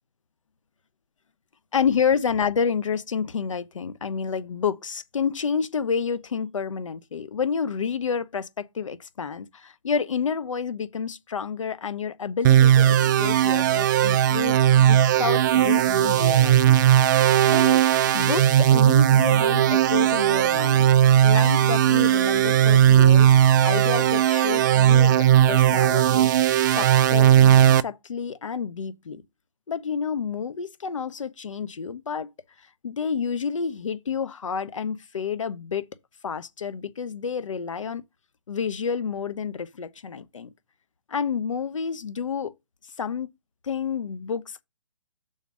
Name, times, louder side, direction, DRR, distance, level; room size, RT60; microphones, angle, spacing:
voice 1, 1.7-16.9 17.5-20.9 21.2-23.3 23.6-29.2 29.7-32.3 32.8-35.9 36.2-38.0 38.5-40.5 41.1-42.5 43.0-43.3 43.6-44.6, left 6 dB, 70° left, 1.0 m, -29 dB
sound 1, 12.4-27.8, right 10 dB, 35° right, 0.4 m, -17 dB
6.7 x 4.1 x 6.2 m
figure-of-eight pair, 140°, 17 cm